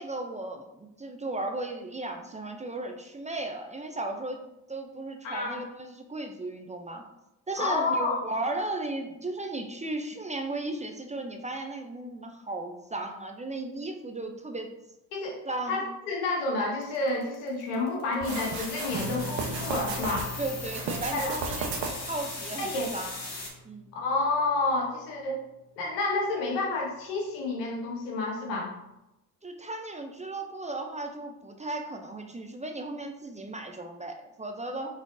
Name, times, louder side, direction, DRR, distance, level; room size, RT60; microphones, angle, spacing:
voice 1, 0.0-4.4 4.7-7.1 7.5-14.7 15.5-15.8 20.4-21.7 22.1-23.2 23.6-23.9 29.4-34.9, right 2 dB, 15° right, 4 dB, 0.5 m, -35 dB
voice 2, 5.2-5.6 7.6-8.2 15.1-15.4 15.7-20.3 21.1-21.4 22.6-22.9 23.9-25.4 25.8-28.7, left 2 dB, 90° left, -1 dB, 1.2 m, -29 dB
sound 1, 16.8-23.5, left 3 dB, 35° left, 1.6 m, -39 dB
sound 2, 18.2-20.3 20.7-22.2, right 4 dB, 70° right, 1.0 m, -34 dB
Strum, 18.9-25.2, right 1 dB, 50° right, 1.2 m, -43 dB
4.8 x 4.0 x 2.6 m, 0.92 s
supercardioid pair, 65°, 47 cm